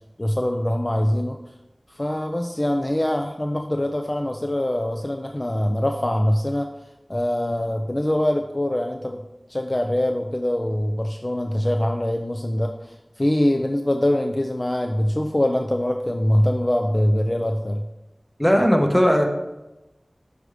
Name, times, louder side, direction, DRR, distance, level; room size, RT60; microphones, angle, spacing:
voice 1, 0.2-1.4 2.0-6.7 7.1-9.2 9.5-17.8, left 1 dB, 35° left, 4 dB, 0.4 m, -23 dB
voice 2, 18.4-19.2, equal, 5° left, 2 dB, 1.1 m, -17 dB
6.3 x 4.9 x 4.9 m, 0.99 s
wide cardioid pair, 45°, 0 cm